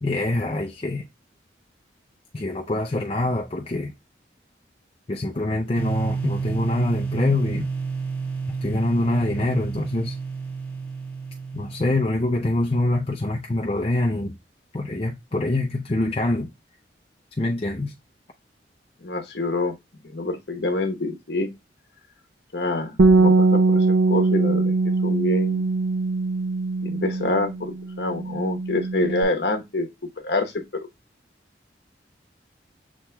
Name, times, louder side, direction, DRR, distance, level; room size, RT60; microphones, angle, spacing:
voice 1, 0.0-1.1 2.3-3.9 5.1-7.7 8.6-10.2 11.5-14.4 14.7-16.5 17.4-17.9, left 2 dB, 30° left, 0.5 m, -25 dB
sound 1, 5.8-12.6, right 5 dB, 10° left, 1.4 m, -30 dB
voice 2, 19.0-19.7 20.0-21.5 22.5-24.7 25.0-25.7 26.8-29.9 30.2-30.5, left 2 dB, 65° left, 1.0 m, -26 dB
Bass guitar, 23.0-29.2, right 3 dB, 80° right, 0.6 m, -21 dB
7.1 x 3.0 x 2.2 m
head